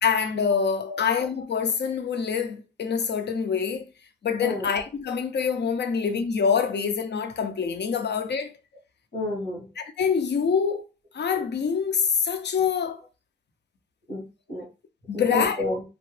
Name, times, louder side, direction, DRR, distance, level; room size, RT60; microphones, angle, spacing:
voice 1, 0.0-3.9 4.2-8.5 9.8-10.8 11.1-13.0 15.1-15.6, left 6 dB, 70° left, 0.5 m, -25 dB
voice 2, 9.1-9.7 14.1-14.6 15.1-15.8, left 1 dB, 90° left, 1.6 m, -30 dB
2.9 x 2.1 x 3.1 m
cardioid pair, 70°, 19 cm